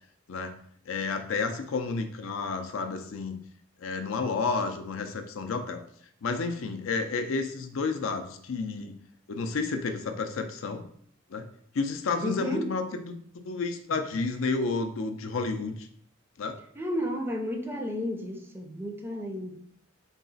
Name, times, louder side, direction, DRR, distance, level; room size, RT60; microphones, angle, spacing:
voice 1, 0.9-3.4 3.8-5.8 6.2-8.9 9.3-10.8 11.3-11.4 11.7-15.9 16.4-16.6, left 4 dB, 80° left, 0.5 m, -31 dB
voice 2, 12.2-12.7 16.8-19.6, left 1 dB, 10° right, 0.4 m, -32 dB
3.9 x 2.4 x 3.9 m
head